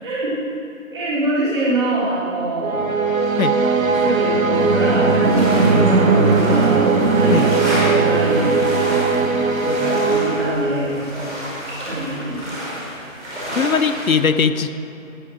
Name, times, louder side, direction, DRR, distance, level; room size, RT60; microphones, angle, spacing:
voice 1, 0.0-0.6 0.9-2.9 3.8-8.6 9.0-9.3 9.6-11.3 11.8-12.4, right 1 dB, 20° right, -10 dB, 3.0 m, -25 dB
sound 1, 2.6-11.1, right 4 dB, 80° right, 1.2 m, -18 dB
sound 2, 4.5-14.1, equal, ahead, 1.7 m, -30 dB
voice 2, 13.5-14.7, left 5 dB, 85° left, 11 dB, 0.8 m, -19 dB
15.0 x 9.6 x 4.6 m, 2.9 s
figure-of-eight pair, 175°, 40 cm